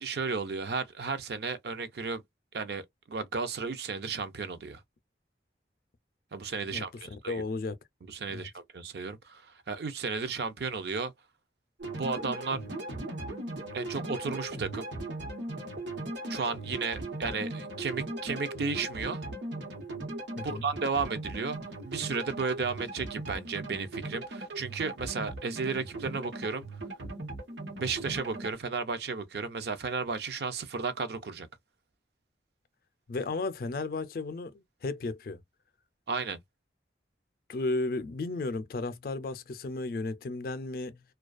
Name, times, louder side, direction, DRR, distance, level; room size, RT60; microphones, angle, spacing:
voice 1, 0.0-2.2 2.5-4.8 6.3-7.4 8.1-11.1 11.9-12.6 13.7-14.8 16.3-19.2 20.4-21.6 21.8-26.6 27.8-31.5 36.1-36.4, right 4 dB, 65° right, 0.4 m, -33 dB
voice 2, 7.3-7.8 8.3-8.5 20.4-20.6 33.1-35.4 37.5-41.0, left 3 dB, 55° left, 0.4 m, -34 dB
sound 1, 11.8-28.5, right 2 dB, 90° right, 1.0 m, -38 dB
2.3 x 2.3 x 2.4 m
head